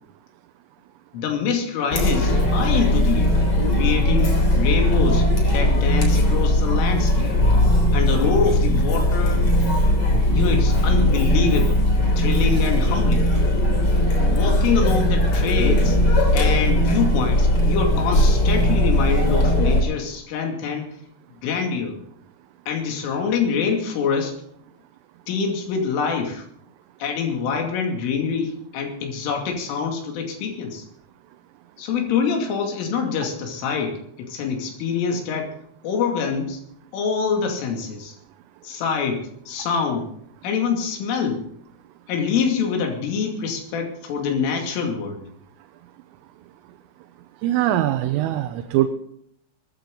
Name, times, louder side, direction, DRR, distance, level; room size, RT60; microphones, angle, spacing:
voice 1, 1.1-3.4 3.7-7.3 7.9-9.5 10.3-11.8 12.2-13.3 14.2-16.0 16.3-20.9 21.4-22.0 22.7-24.4 25.3-26.4 27.0-30.8 31.8-35.5 35.8-36.6 36.9-38.2 38.6-40.1 40.4-41.4 42.1-45.2, left 6 dB, 75° left, 3 dB, 5.0 m, -25 dB
Chatter, 1.9-19.8, left 1 dB, 35° left, 3.6 m, -19 dB
voice 2, 47.4-48.9, right 13 dB, 85° right, 7 dB, 3.5 m, -21 dB
20.0 x 14.5 x 3.9 m, 0.71 s
omnidirectional pair, 5.8 m